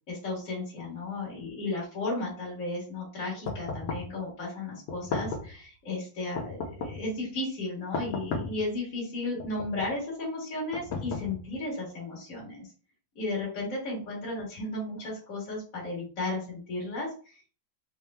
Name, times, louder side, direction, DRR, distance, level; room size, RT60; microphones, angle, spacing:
voice 1, 0.1-12.7 13.2-17.5, left 2 dB, 40° left, -6 dB, 1.8 m, -34 dB
sound 1, 3.5-4.2 4.9-5.6 6.4-7.1 7.9-8.7 9.4-10.0 10.7-11.6, left 4 dB, 70° left, 0.9 m, -35 dB
4.2 x 3.4 x 2.2 m, 0.37 s
omnidirectional pair, 2.4 m